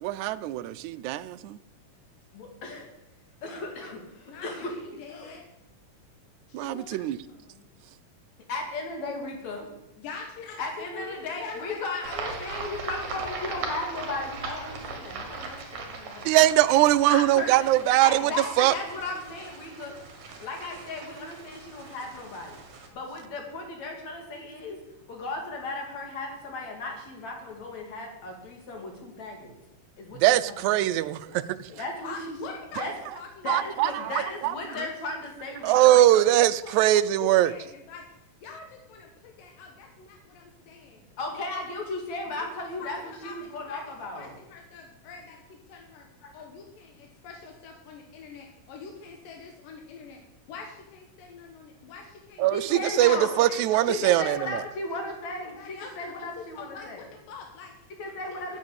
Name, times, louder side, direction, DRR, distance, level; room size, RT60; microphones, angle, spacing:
voice 1, 0.0-1.6 6.5-7.2 16.3-18.2 18.6-18.7 30.2-31.4 33.5-33.9 34.4-34.5 35.6-37.5 52.4-54.6, right 14 dB, 80° right, 1.8 m, -21 dB
voice 2, 2.3-2.9 3.4-4.7 5.1-5.3 8.5-9.7 10.6-16.5 17.1-17.7 18.0-19.9 20.4-22.6 22.9-24.8 25.1-29.5 30.0-30.9 31.8-32.4 32.8-32.9 33.4-36.0 41.2-44.4 46.2-46.3 52.5-53.3 53.9-57.0 58.0-58.6, left 2 dB, 55° left, 3.5 m, -36 dB
voice 3, 4.3-5.4 6.5-7.7 10.0-12.0 12.3-13.3 31.3-31.4 31.7-32.8 33.1-34.1 34.6-34.9 35.6-35.7 36.0-36.8 37.2-41.0 42.3-42.5 42.8-46.1 46.3-50.2 50.5-54.5 55.5-57.9 58.3-58.6, left 5 dB, 90° left, 2.9 m, -45 dB
sound 1, 12.0-22.9, right 4 dB, 65° right, 3.3 m, -39 dB
11.0 x 7.7 x 8.4 m
omnidirectional pair, 3.8 m